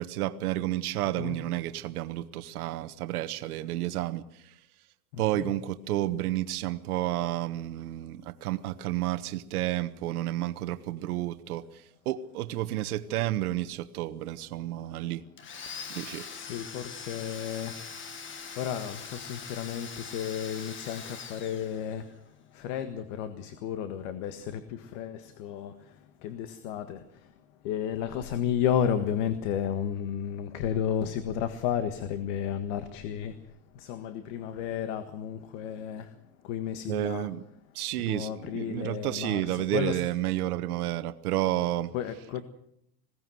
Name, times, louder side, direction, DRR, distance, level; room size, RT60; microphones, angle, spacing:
voice 1, 0.0-4.5 5.2-11.7 12.0-15.2 15.9-16.3 36.9-37.4 37.7-41.9, right 14 dB, 75° right, 12 dB, 1.3 m, -31 dB
Domestic sounds home sounds, 15.4-22.2, left 6 dB, 25° left, 1.9 m, -42 dB
voice 2, 16.3-17.7 18.6-22.0 22.6-25.7 26.2-27.0 27.6-33.3 33.8-36.0 36.5-37.3 38.1-40.0 41.9-42.4, left 9 dB, 55° left, 10 dB, 1.6 m, -32 dB
20.5 x 17.5 x 7.8 m, 0.75 s
supercardioid pair, 145°, 45 cm